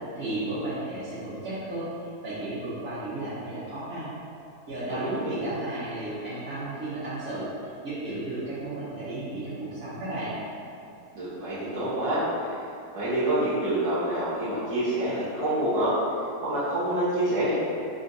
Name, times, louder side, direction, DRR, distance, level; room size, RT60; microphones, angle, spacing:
voice 1, 0.1-1.9 2.2-4.1 4.7-10.3, right 2 dB, 45° right, -14 dB, 1.0 m, -34 dB
voice 2, 4.9-5.4 11.1-12.5 12.9-15.9 16.4-17.5, right 1 dB, 65° right, -13 dB, 1.3 m, -27 dB
3.8 x 2.5 x 3.8 m, 2.6 s
omnidirectional pair, 1.7 m